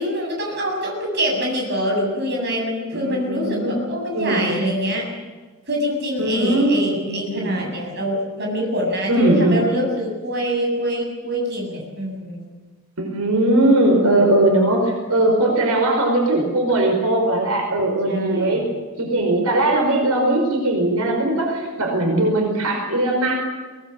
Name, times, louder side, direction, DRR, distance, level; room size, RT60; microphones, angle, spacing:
voice 1, 0.0-5.1 5.7-12.4 18.1-18.6, equal, 50° right, 0 dB, 7.6 m, -25 dB
voice 2, 2.9-3.8 4.1-4.8 6.2-7.6 9.1-9.6 13.0-18.6 19.0-23.4, right 1 dB, 85° right, 1 dB, 5.2 m, -19 dB
23.0 x 19.0 x 8.3 m, 1.4 s
head